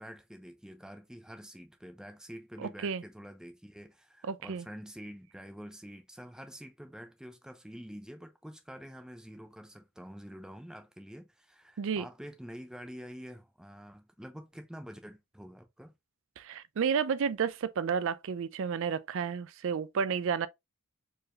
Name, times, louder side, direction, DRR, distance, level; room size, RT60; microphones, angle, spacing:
voice 1, 0.0-15.9, equal, 5° right, 0.5 m, -47 dB
voice 2, 2.6-3.0 4.2-4.7 11.8-12.1 16.4-20.5, right 6 dB, 65° right, 0.4 m, -31 dB
4.5 x 3.3 x 2.3 m
head